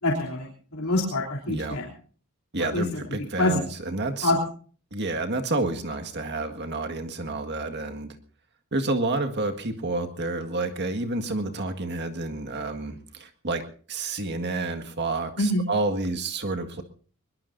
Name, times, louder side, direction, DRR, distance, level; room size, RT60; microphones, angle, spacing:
voice 1, 0.0-1.9 2.6-3.0 3.4-3.6 4.2-4.4 15.4-15.6, left 2 dB, 85° left, -2 dB, 3.4 m, -25 dB
voice 2, 2.5-4.3 4.9-8.2 8.7-13.6 13.9-16.8, right 2 dB, 50° right, 5 dB, 1.8 m, -29 dB
21.5 x 21.5 x 2.7 m, 0.42 s
head